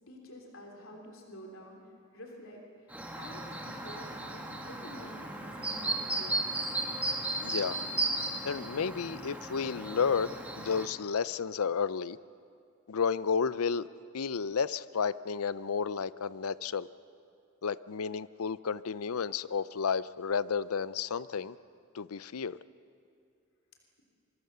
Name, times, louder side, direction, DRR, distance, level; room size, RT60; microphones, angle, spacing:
voice 1, 0.1-1.8 2.1-6.4, left 1 dB, 70° left, 0 dB, 3.3 m, -49 dB
Chirp tweet, 2.9-10.9, right 2 dB, 5° right, 1.7 m, -35 dB
voice 2, 7.4-7.8 8.4-12.2 12.9-13.9 14.1-16.9 17.6-21.5 21.9-22.6, left 6 dB, 90° left, 17 dB, 0.6 m, -32 dB
26.0 x 24.0 x 6.8 m, 2.4 s
head